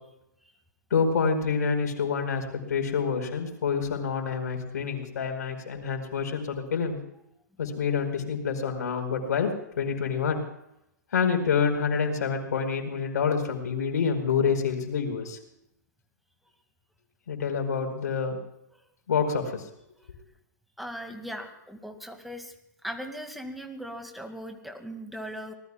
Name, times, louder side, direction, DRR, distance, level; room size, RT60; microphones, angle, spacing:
voice 1, 0.9-7.0 7.6-9.5 9.8-10.4 11.1-15.4 17.3-18.4 19.1-19.6, left 6 dB, 65° left, 4 dB, 4.7 m, -27 dB
voice 2, 20.8-22.5 22.8-25.5, equal, ahead, 6 dB, 2.2 m, -39 dB
25.5 x 19.5 x 2.4 m, 0.81 s
figure-of-eight pair, 115°, 10 cm